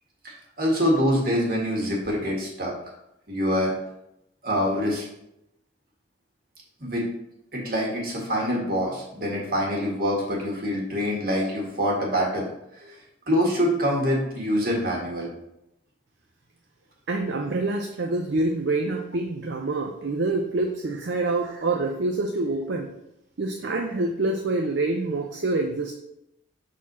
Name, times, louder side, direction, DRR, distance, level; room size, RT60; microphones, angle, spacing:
voice 1, 0.2-2.7 3.3-3.7 4.4-5.1 6.8-7.1 7.5-13.0 13.3-15.3, equal, 50° right, -2 dB, 1.8 m, -25 dB
voice 2, 17.1-22.9 23.4-25.9, right 2 dB, 65° right, 3 dB, 0.5 m, -26 dB
6.3 x 4.0 x 4.1 m, 0.82 s
head